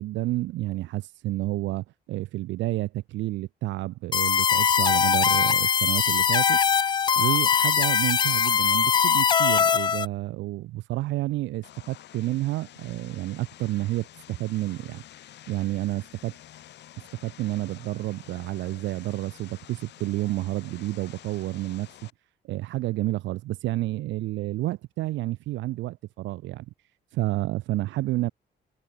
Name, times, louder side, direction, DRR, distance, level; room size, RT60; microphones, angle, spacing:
voice 1, 0.0-6.6 7.2-15.0 15.5-16.3 17.2-21.9 22.4-26.7 27.1-28.3, right 17 dB, 90° right, 0.6 m, -30 dB
sound 1, 4.1-10.1, left 7 dB, 25° left, 0.3 m, -21 dB
Vehicle, 11.6-22.1, left 12 dB, 70° left, 4.5 m, -49 dB
cardioid pair, 155°, 19 cm